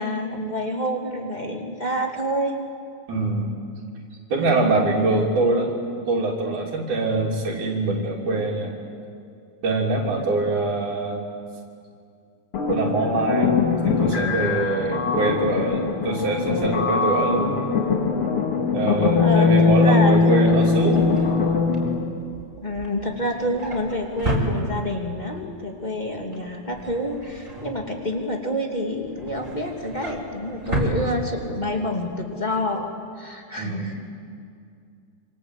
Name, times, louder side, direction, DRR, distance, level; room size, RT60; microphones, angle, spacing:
voice 1, 0.0-2.5 4.4-4.7 19.1-20.4 20.7-20.8 22.6-32.9 33.2-34.0, equal, 15° left, 1 dB, 2.3 m, -28 dB
voice 2, 3.1-3.5 4.3-5.7 6.1-8.7 9.6-11.2 12.7-13.5 13.8-17.7 18.7-21.2 33.6-33.9, right 2 dB, 80° right, -3 dB, 4.7 m, -23 dB
sound 1, 12.5-22.1, left 5 dB, 50° left, 2.8 m, -21 dB
Drawer open or close, 20.2-25.2 25.6-25.9 26.1-28.4 28.8-31.8 32.1-32.3 32.6-32.7, right 1 dB, 25° right, 4.7 m, -32 dB
27.0 x 25.5 x 8.4 m, 2.4 s
omnidirectional pair, 3.4 m